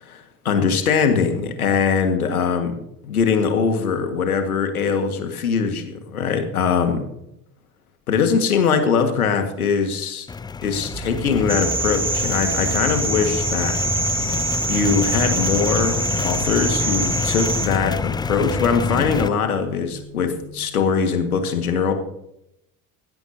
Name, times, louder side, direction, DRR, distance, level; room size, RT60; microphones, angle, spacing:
voice 1, 0.0-2.7 3.0-7.1 8.1-10.3 10.6-13.8 14.7-21.9, left 6 dB, 80° left, 7 dB, 1.9 m, -21 dB
sound 1, 10.3-19.3, left 5 dB, 10° left, 0.4 m, -27 dB
sound 2, 10.9-20.6, right 2 dB, 70° right, 5.7 m, -36 dB
sound 3, 11.5-17.7, right 3 dB, 10° right, 3.0 m, -25 dB
17.0 x 16.0 x 2.8 m, 0.80 s
figure-of-eight pair, 60°, 43 cm